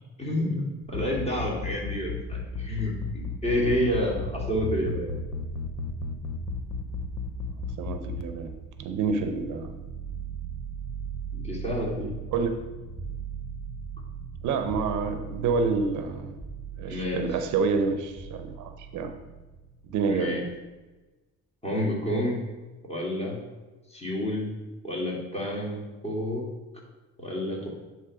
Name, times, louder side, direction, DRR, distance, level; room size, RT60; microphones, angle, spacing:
voice 1, 0.2-5.1 11.3-12.1 16.9-17.2 20.1-20.4 21.6-22.4 22.9-23.4 23.9-24.5 24.8-26.5 27.2-27.7, left 1 dB, 20° left, -4 dB, 2.5 m, -29 dB
sound 1, 0.8-8.2, left 6 dB, 75° left, 0.7 m, -33 dB
sound 2, 3.5-20.6, right 6 dB, 10° right, 1.2 m, -40 dB
voice 2, 7.8-8.5 8.8-9.7 12.3-12.5 14.4-16.3 16.8-19.1 19.9-20.4, right 4 dB, 80° right, 7 dB, 0.7 m, -28 dB
9.8 x 3.3 x 4.9 m, 1.2 s
cardioid pair, 90°, 30 cm